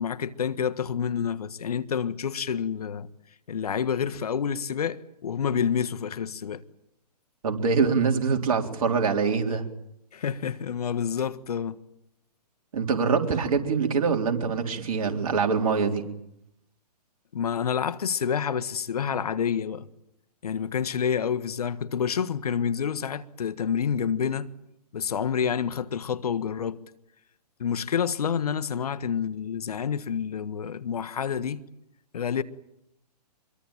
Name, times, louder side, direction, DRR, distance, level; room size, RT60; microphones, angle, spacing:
voice 1, 0.0-3.1 3.5-6.6 10.1-11.8 17.3-19.9 20.4-24.5 24.9-26.8 27.6-31.6 32.1-32.4, left 7 dB, 65° left, 1.5 m, -28 dB
voice 2, 7.4-9.6 12.7-16.0, right 5 dB, 55° right, 3.9 m, -24 dB
25.0 x 23.0 x 9.0 m
figure-of-eight pair, 130°, 21 cm